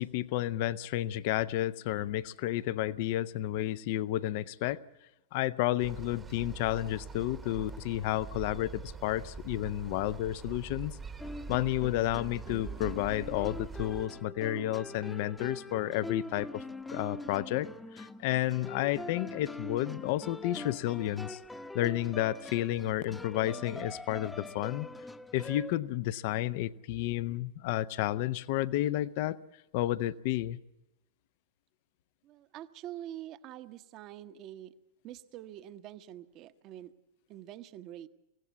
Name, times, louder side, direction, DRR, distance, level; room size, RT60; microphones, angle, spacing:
voice 1, 0.0-4.8 5.3-11.0 11.5-16.6 16.9-21.4 21.7-24.9 25.3-29.4 29.7-30.6, left 14 dB, 50° left, 0.7 m, -31 dB
sound 1, 5.8-14.1, right 5 dB, 15° right, 1.1 m, -44 dB
sound 2, 11.2-25.7, left 2 dB, 5° left, 0.9 m, -43 dB
voice 2, 32.2-34.7 35.0-36.9 37.3-38.1, right 12 dB, 40° right, 1.0 m, -45 dB
24.5 x 16.5 x 8.2 m
figure-of-eight pair, 95°, 0 cm